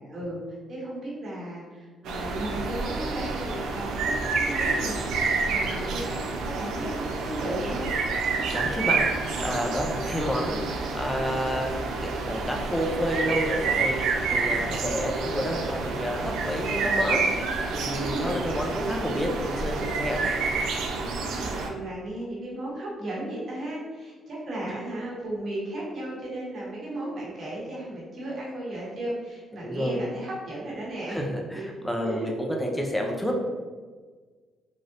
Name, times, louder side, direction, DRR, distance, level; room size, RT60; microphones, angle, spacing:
voice 1, 0.0-4.1 4.4-7.9 14.5-14.8 17.9-18.4 21.0-31.2 31.5-31.7 32.0-32.4, right 1 dB, 50° right, -6 dB, 1.2 m, -35 dB
sound 1, 2.0-21.7, right 4 dB, 85° right, 0.3 m, -28 dB
voice 2, 8.5-14.0 14.3-17.2 17.7-20.3 24.6-24.8 29.6-30.0 31.1-33.5, equal, 5° left, 0 dB, 0.5 m, -30 dB
3.3 x 2.6 x 2.5 m, 1.4 s
cardioid pair, 90°, 0 cm